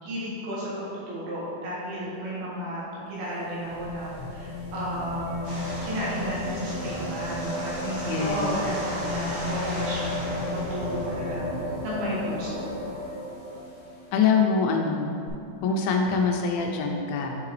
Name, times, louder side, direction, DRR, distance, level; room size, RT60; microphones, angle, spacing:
voice 1, 0.0-5.5 5.8-11.5 11.8-12.6, equal, 85° right, -8 dB, 3.7 m, -33 dB
sound 1, 3.1-14.1 15.3-15.4, left 1 dB, 65° left, 1.6 m, -34 dB
sound 2, 5.4-11.3, equal, 50° right, 2.4 m, -37 dB
voice 2, 8.1-8.5 14.1-15.2 15.6-17.4, left 5 dB, 80° left, 2 dB, 2.2 m, -24 dB
8.9 x 4.7 x 3.2 m, 2.6 s
omnidirectional pair, 4.3 m